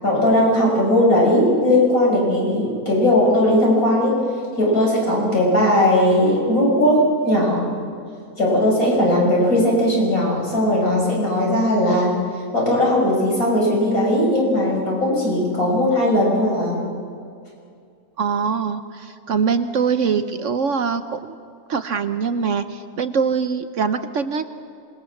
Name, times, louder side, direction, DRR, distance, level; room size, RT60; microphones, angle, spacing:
voice 1, 0.0-4.2 4.6-7.7 8.4-12.1 12.5-16.8, left 1 dB, 65° left, -3 dB, 7.0 m, -18 dB
voice 2, 18.2-21.4 21.7-24.5, right 6 dB, 60° right, 10 dB, 1.0 m, -23 dB
26.5 x 21.0 x 7.2 m, 2.4 s
omnidirectional pair, 1.6 m